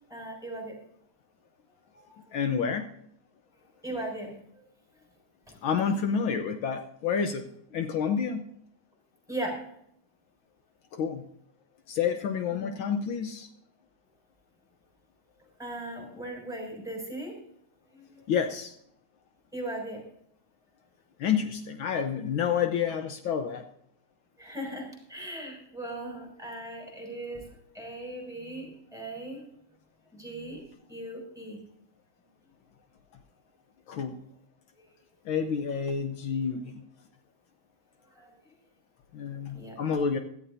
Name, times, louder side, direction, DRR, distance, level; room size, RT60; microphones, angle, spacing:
voice 1, 0.1-0.7 1.9-2.3 3.8-4.7 5.5-5.6 9.3-9.7 12.5-12.7 15.6-17.3 17.9-18.2 19.5-20.0 24.4-27.4 27.7-29.4 30.1-30.6 30.9-31.6 38.1-38.3 39.2-39.8, right 1 dB, ahead, 0 dB, 5.9 m, -38 dB
voice 2, 2.3-2.9 5.6-7.4 7.7-8.4 10.9-11.2 11.9-13.5 18.3-18.8 21.2-23.6 33.9-34.2 35.2-36.8 39.1-40.2, left 7 dB, 75° left, 6 dB, 1.7 m, -29 dB
16.5 x 13.5 x 2.7 m, 0.70 s
omnidirectional pair, 2.2 m